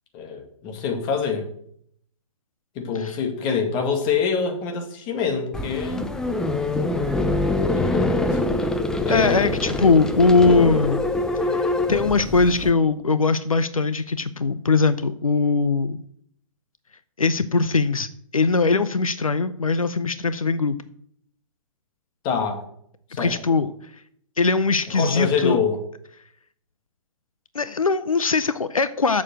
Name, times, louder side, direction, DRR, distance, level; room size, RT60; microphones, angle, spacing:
voice 1, 0.1-1.5 2.8-6.1 7.7-8.4 9.0-9.5 22.2-22.6 23.1-23.3 24.9-25.8, left 6 dB, 30° left, 4 dB, 2.0 m, -25 dB
sound 1, 5.5-12.7, left 2 dB, 5° left, 0.5 m, -24 dB
voice 2, 9.1-11.0 11.5-16.0 17.2-20.8 23.2-23.7 24.4-25.6 27.5-29.2, left 4 dB, 85° left, 14 dB, 0.6 m, -21 dB
7.3 x 6.7 x 7.7 m, 0.67 s
figure-of-eight pair, 125°, 17 cm